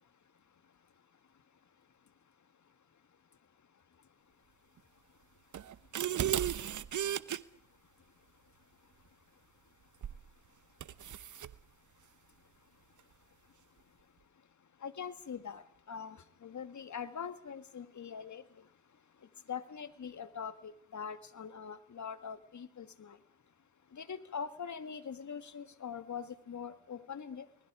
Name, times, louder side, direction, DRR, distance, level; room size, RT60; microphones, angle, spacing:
sound 1, 5.5-7.4 10.0-10.3 10.8-11.5, right 10 dB, 50° right, 0.9 m, -34 dB
voice 1, 14.8-18.7 19.5-23.2 23.9-27.5, left 7 dB, 45° left, 1.9 m, -43 dB
30.0 x 20.0 x 4.9 m
supercardioid pair, 55°, 39 cm